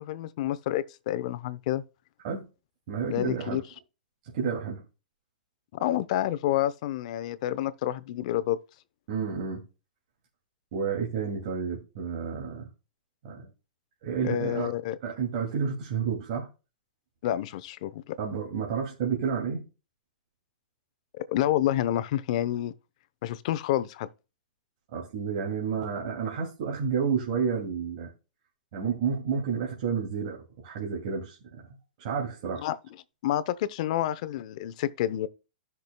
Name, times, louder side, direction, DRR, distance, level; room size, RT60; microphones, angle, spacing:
voice 1, 0.0-1.8 3.1-3.6 5.8-8.6 14.2-15.0 17.2-18.2 21.2-22.7 23.2-24.1 32.6-32.8 33.2-35.3, left 13 dB, 50° left, 0.7 m, -28 dB
voice 2, 2.9-3.6 4.3-4.8 9.1-9.6 10.7-12.7 13.2-13.5 14.0-14.7 15.0-16.5 18.2-19.6 24.9-28.1 28.7-31.7 32.0-32.6, right 6 dB, 50° right, 2.5 m, -30 dB
15.0 x 6.0 x 2.3 m
hypercardioid pair, 155°, 5 cm